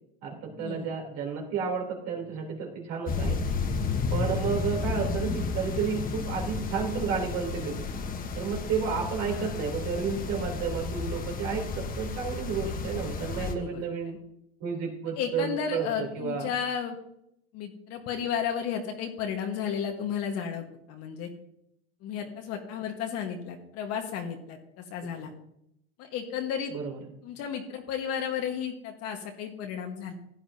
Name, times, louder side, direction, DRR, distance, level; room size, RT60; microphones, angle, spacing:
voice 1, 0.2-3.4 4.1-7.8 8.3-14.2 14.6-16.5 26.7-27.0, right 6 dB, 55° right, 0 dB, 3.6 m, -31 dB
sound 1, 3.1-13.5, left 4 dB, 25° left, 1.3 m, -32 dB
voice 2, 9.2-9.7 13.4-13.8 15.2-16.9 17.5-21.3 22.0-25.3 26.0-26.7 27.2-30.1, left 8 dB, 50° left, 3 dB, 1.6 m, -33 dB
16.0 x 9.9 x 2.9 m, 0.78 s
supercardioid pair, 125°, 32 cm